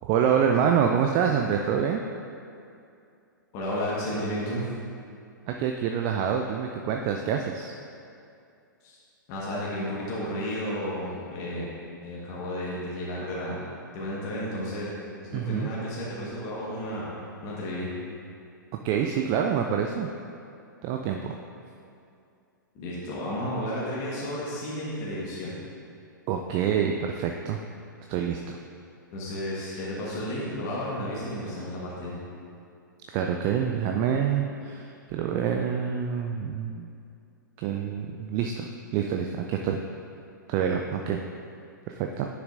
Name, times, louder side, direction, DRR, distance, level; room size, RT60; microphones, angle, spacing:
voice 1, 0.0-2.0 5.5-7.7 15.3-15.7 18.8-20.1 20.8-21.4 26.3-27.6 28.1-28.6 33.1-36.9 37.6-39.8 40.5-41.2 41.9-42.3, right 7 dB, 30° right, 3 dB, 0.3 m, -26 dB
voice 2, 3.5-4.7 8.8-9.0 9.3-11.7 12.0-13.6 13.9-14.9 15.2-17.1 17.4-17.9 22.7-25.6 29.1-32.2, equal, 30° left, -6 dB, 1.4 m, -32 dB
10.0 x 6.4 x 2.6 m, 2.5 s
figure-of-eight pair, 110°, 11 cm